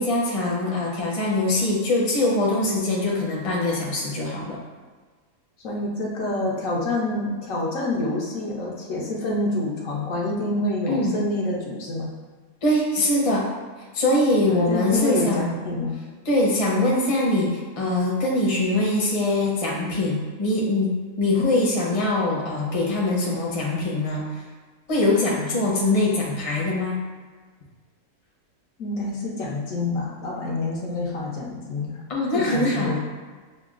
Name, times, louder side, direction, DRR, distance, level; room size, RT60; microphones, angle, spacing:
voice 1, 0.0-4.6 10.9-11.1 12.6-13.5 13.9-15.5 16.2-24.4 24.9-27.0 32.1-33.0, left 2 dB, 30° left, -4 dB, 0.7 m, -23 dB
voice 2, 5.6-12.1 14.5-16.0 28.8-32.0 32.3-33.0, left 2 dB, 70° left, -3 dB, 1.1 m, -27 dB
6.5 x 2.3 x 2.4 m, 1.4 s
omnidirectional pair, 1.5 m